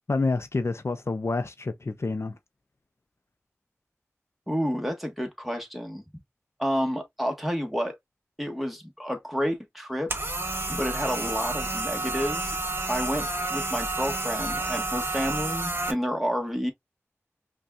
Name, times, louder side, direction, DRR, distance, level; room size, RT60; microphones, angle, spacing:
voice 1, 0.1-2.4, left 3 dB, 60° left, 0.5 m, -28 dB
voice 2, 4.5-6.0 6.6-8.0 8.4-10.1 10.7-12.5 12.9-16.7, equal, ahead, 1.2 m, -30 dB
sound 1, 10.1-15.9, right 2 dB, 50° right, 1.0 m, -30 dB
5.2 x 2.3 x 2.3 m
wide cardioid pair, 45°, 5 cm